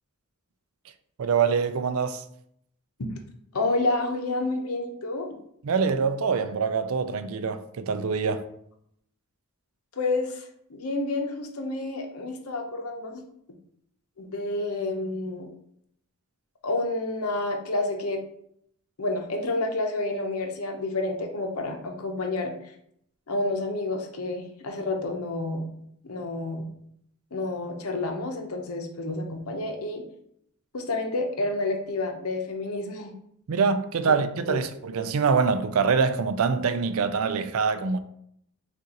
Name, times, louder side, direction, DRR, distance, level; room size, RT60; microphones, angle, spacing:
voice 1, 1.2-2.2 5.6-8.4 33.5-38.0, right 5 dB, 65° right, 0.4 m, -24 dB
voice 2, 3.5-5.3 10.0-10.4 10.7-13.2 14.2-15.5 16.6-18.2 19.0-22.5 23.3-25.6 26.0-26.7 27.3-30.0 30.7-33.1 34.5-34.6, left 2 dB, 80° left, 0.8 m, -29 dB
6.3 x 2.5 x 2.9 m
head